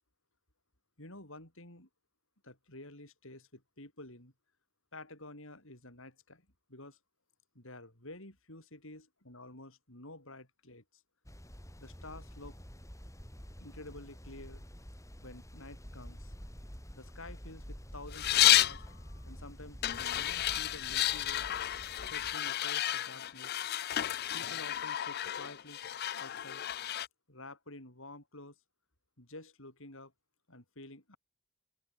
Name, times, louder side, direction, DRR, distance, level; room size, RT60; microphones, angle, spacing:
voice 1, 1.0-1.9 2.4-4.3 4.9-7.0 7.5-11.0 11.8-12.6 13.6-14.6 15.2-16.3 16.9-18.8 19.2-21.5 22.0-23.6 24.3-25.8 26.2-26.6 27.3-28.6 29.2-30.1 30.5-31.2, left 2 dB, 60° left, 7.9 m, -50 dB
sound 1, 11.3-22.4, equal, 15° left, 6.8 m, -49 dB
sound 2, 18.1-18.8 19.8-27.1, left 13 dB, 45° left, 0.4 m, -31 dB
open air
head